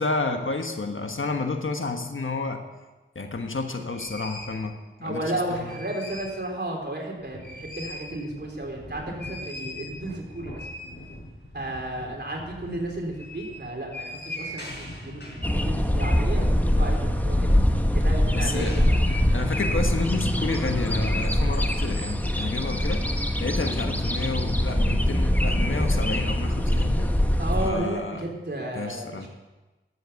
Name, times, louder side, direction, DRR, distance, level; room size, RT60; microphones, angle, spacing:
voice 1, 0.0-2.6 3.1-5.2 5.5-5.7 18.3-23.1 23.4-27.1 27.6-28.3 28.7-29.3, left 3 dB, 75° left, 5 dB, 1.3 m, -30 dB
sound 1, 3.3-3.4 3.9-4.6 5.4-6.4 6.8-6.9 7.2-21.1, left 1 dB, 60° left, 4.7 m, -39 dB
voice 2, 5.0-10.7 11.5-17.5 17.9-18.8 27.4-29.3, right 1 dB, 55° right, -1 dB, 3.6 m, -33 dB
sound 2, 15.4-27.7, left 1 dB, 10° left, 1.1 m, -23 dB
12.5 x 7.9 x 7.1 m, 1.1 s
wide cardioid pair, 45°, 21 cm